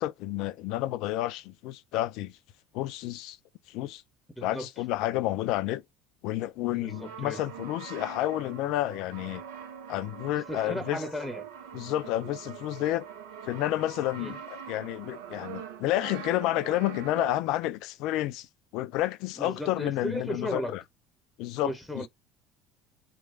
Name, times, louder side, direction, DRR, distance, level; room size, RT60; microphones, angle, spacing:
voice 1, 0.0-2.3 2.7-3.4 3.7-4.0 4.4-5.8 6.2-9.4 9.9-11.0 11.7-13.1 13.4-18.5 18.7-20.8 21.4-22.1, left 15 dB, 55° left, 0.3 m, -30 dB
voice 2, 4.4-4.7 6.7-7.4 10.5-11.4 14.2-14.4 19.4-20.8 21.6-22.1, left 1 dB, 5° left, 0.9 m, -35 dB
Brass instrument, 6.8-17.7, right 8 dB, 70° right, 0.6 m, -43 dB
3.1 x 2.1 x 2.6 m
figure-of-eight pair, 60°, 0 cm